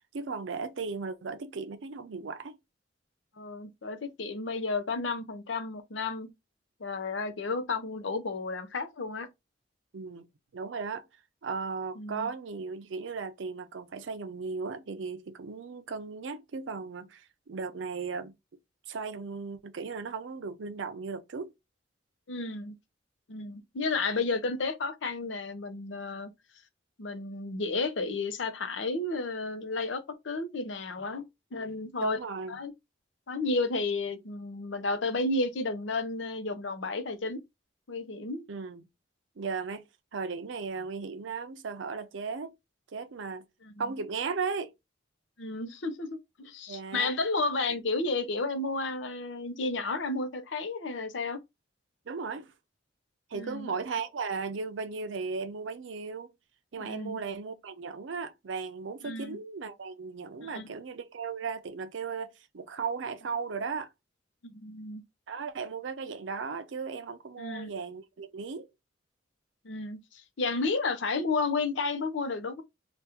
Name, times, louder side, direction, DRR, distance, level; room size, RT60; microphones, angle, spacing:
voice 1, 0.1-2.5 9.9-10.3 10.5-11.0 11.4-18.3 18.9-21.5 32.0-32.6 38.5-38.9 39.4-39.8 40.1-42.5 42.9-43.4 43.8-44.7 46.7-47.1 52.1-52.5 53.3-56.3 56.7-63.9 65.3-68.7, right 5 dB, 85° right, 0.5 m, -36 dB
voice 2, 3.4-6.3 6.8-9.3 12.0-12.3 22.3-22.7 23.3-26.3 27.0-31.2 31.5-32.2 32.5-32.7 33.3-37.4 37.9-38.4 43.6-43.7 45.4-51.4 53.3-53.7 56.8-57.2 59.0-59.4 60.4-60.7 64.4-65.0 67.4-67.7 69.6-72.6, left 3 dB, 80° left, 0.7 m, -32 dB
3.4 x 2.4 x 2.9 m
head